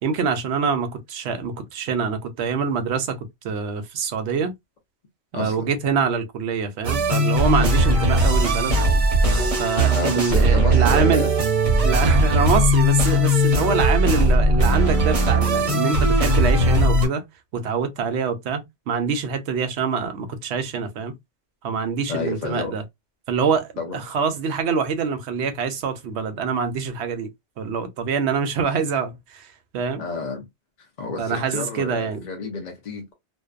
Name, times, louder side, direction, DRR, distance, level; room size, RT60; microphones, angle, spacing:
voice 1, 0.0-3.2 3.4-4.5 5.3-8.8 9.6-11.3 11.8-17.2 17.5-21.1 21.6-22.8 23.3-27.3 27.6-30.0 31.2-32.2, right 6 dB, 70° right, 0.8 m, -25 dB
voice 2, 5.3-5.7 9.9-11.3 22.1-22.8 23.8-24.0 30.0-30.5 31.0-33.1, left 4 dB, 45° left, 0.7 m, -29 dB
sound 1, 6.8-17.1, right 1 dB, 35° right, 0.7 m, -19 dB
2.7 x 2.1 x 2.3 m
omnidirectional pair, 1.2 m